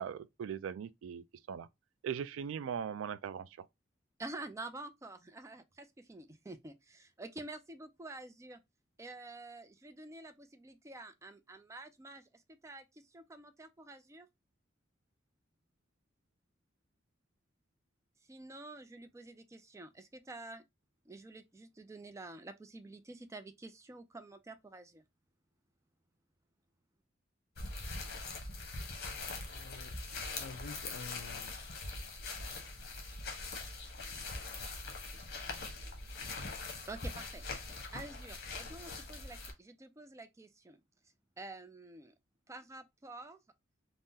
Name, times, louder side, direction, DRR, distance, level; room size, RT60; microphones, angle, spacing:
voice 1, 0.0-1.7 2.0-3.5, right 7 dB, 85° right, 0.3 m, -39 dB
voice 2, 4.2-8.6 9.0-14.3 18.3-20.6 21.1-25.0 36.9-37.4 37.9-40.8 41.4-42.1 42.5-43.4, right 2 dB, 15° right, 0.4 m, -49 dB
sound 1, 27.6-39.5, left 3 dB, 55° left, 1.0 m, -42 dB
voice 3, 28.8-31.5, left 4 dB, 80° left, 0.5 m, -50 dB
3.6 x 2.1 x 2.7 m
head